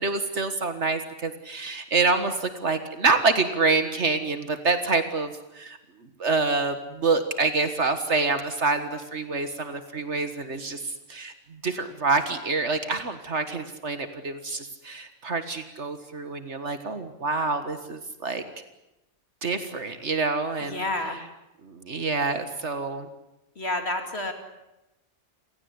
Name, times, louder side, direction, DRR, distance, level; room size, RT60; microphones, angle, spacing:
voice 1, 0.0-5.8 6.2-18.4 19.4-20.8 21.6-23.1, right 3 dB, 70° right, 9 dB, 2.0 m, -27 dB
voice 2, 20.6-21.2 23.6-24.3, left 2 dB, 60° left, 6 dB, 2.9 m, -29 dB
28.5 x 17.5 x 9.7 m, 0.94 s
omnidirectional pair, 1.2 m